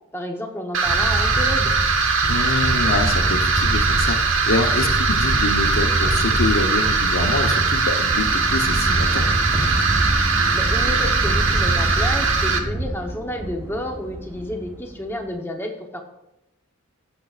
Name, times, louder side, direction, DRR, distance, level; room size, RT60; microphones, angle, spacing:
voice 1, 0.1-1.7 10.5-16.0, left 1 dB, 10° left, 3 dB, 0.9 m, -30 dB
sound 1, 0.7-12.6, right 4 dB, 70° right, 1.1 m, -21 dB
sound 2, 0.8-12.9, right 1 dB, 30° right, 1.7 m, -25 dB
voice 2, 2.3-9.2, left 3 dB, 85° left, 4 dB, 0.9 m, -26 dB
sound 3, 8.1-15.4, right 1 dB, 10° right, 0.5 m, -32 dB
14.5 x 7.1 x 2.4 m, 0.86 s
head